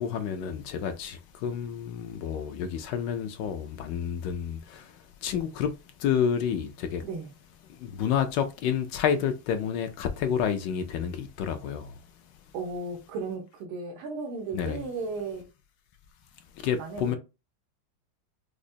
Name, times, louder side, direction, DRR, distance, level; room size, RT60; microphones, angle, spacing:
voice 1, 0.0-4.9 5.2-5.7 6.0-7.0 7.7-11.9 14.5-14.8 16.6-17.2, left 8 dB, 75° left, 1.1 m, -29 dB
voice 2, 12.5-15.5 16.7-17.2, right 4 dB, 85° right, 1.7 m, -35 dB
4.9 x 2.1 x 2.6 m
omnidirectional pair, 2.2 m